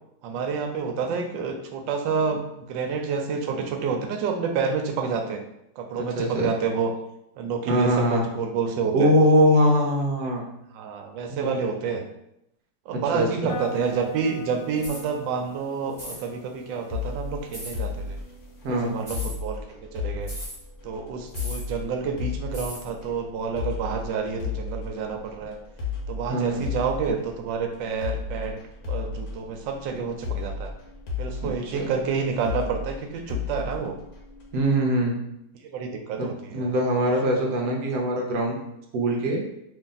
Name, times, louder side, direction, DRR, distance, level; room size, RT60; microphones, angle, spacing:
voice 1, 0.2-5.4 5.8-6.9 7.4-9.1 10.7-12.0 12.9-18.2 18.7-20.3 20.8-25.6 26.1-28.6 28.9-30.7 31.2-33.9 35.7-36.8, right 5 dB, 90° right, 4 dB, 1.3 m, -29 dB
voice 2, 6.0-6.5 7.7-8.3 8.9-10.5 11.3-11.5 12.9-13.5 18.6-19.0 26.3-26.7 31.4-31.9 34.5-35.2 36.2-38.6 38.9-39.5, equal, 65° right, 0 dB, 1.1 m, -23 dB
sound 1, 13.5-19.3, right 2 dB, 80° left, 1.3 m, -40 dB
sound 2, 14.8-15.1 15.9-16.2 17.5-17.8 19.0-19.4 20.3-20.6 21.3-21.7 22.5-22.9, equal, 20° right, 1.2 m, -37 dB
sound 3, 16.9-34.7, left 5 dB, 60° left, 1.2 m, -34 dB
3.1 x 2.6 x 3.8 m, 0.82 s
omnidirectional pair, 1.9 m